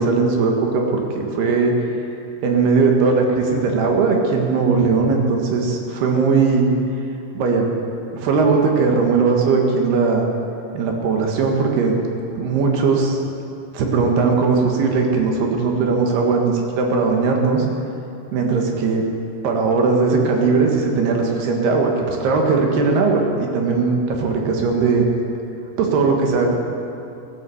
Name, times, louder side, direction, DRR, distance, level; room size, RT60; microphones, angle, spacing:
voice 1, 0.0-1.7 2.4-6.7 7.4-7.7 8.1-10.3 10.7-11.9 12.4-13.2 13.7-17.7 18.3-19.0 19.4-25.1 25.8-26.5, right 4 dB, 70° right, 1 dB, 3.5 m, -18 dB
17.0 x 10.5 x 7.9 m, 2.8 s
omnidirectional pair, 5.0 m